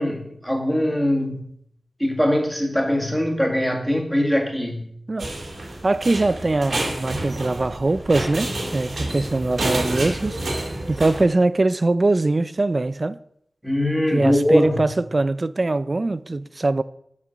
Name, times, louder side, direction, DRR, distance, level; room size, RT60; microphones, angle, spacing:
voice 1, 0.0-1.4 2.0-4.9 13.6-14.9, equal, ahead, 1.8 m, -21 dB
sound 1, 5.2-11.3, right 1 dB, 60° right, 2.6 m, -29 dB
voice 2, 5.8-10.4 10.9-13.2 14.1-16.8, right 2 dB, 40° right, 0.4 m, -22 dB
7.4 x 6.1 x 6.3 m
wide cardioid pair, 85°, 0 cm